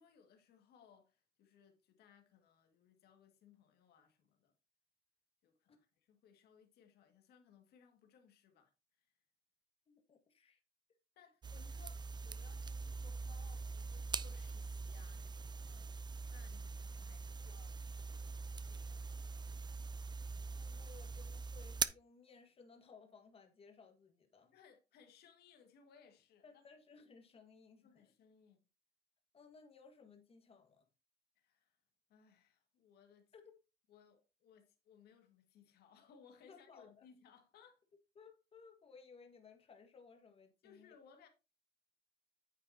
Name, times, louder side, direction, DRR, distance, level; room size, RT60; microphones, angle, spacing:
voice 1, 0.0-4.5 5.4-9.1 11.2-15.6 16.3-19.6 24.5-26.6 27.8-28.6 31.4-31.8 32.1-33.3 33.9-37.8 40.6-41.3, left 7 dB, 70° left, 2.0 m, -65 dB
voice 2, 9.9-10.6 15.6-15.9 20.5-24.6 26.4-28.1 29.3-30.9 33.3-33.5 36.5-37.0 38.2-40.9, left 5 dB, 35° left, 1.7 m, -61 dB
sound 1, 11.4-21.9, right 4 dB, 25° right, 0.5 m, -43 dB
9.3 x 7.1 x 2.8 m
cardioid pair, 110°, 17 cm